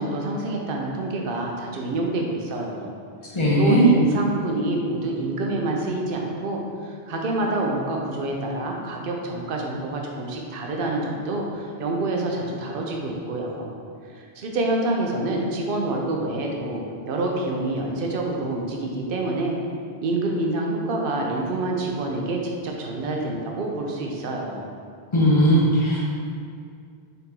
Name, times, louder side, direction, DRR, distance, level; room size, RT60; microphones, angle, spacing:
voice 1, 0.0-2.9 3.6-13.7 14.4-19.6 20.0-24.7, right 2 dB, 65° right, 0 dB, 0.7 m, -27 dB
voice 2, 3.3-3.9 25.1-26.1, equal, 35° left, -5 dB, 0.6 m, -18 dB
3.9 x 3.7 x 2.8 m, 2.3 s
omnidirectional pair, 1.1 m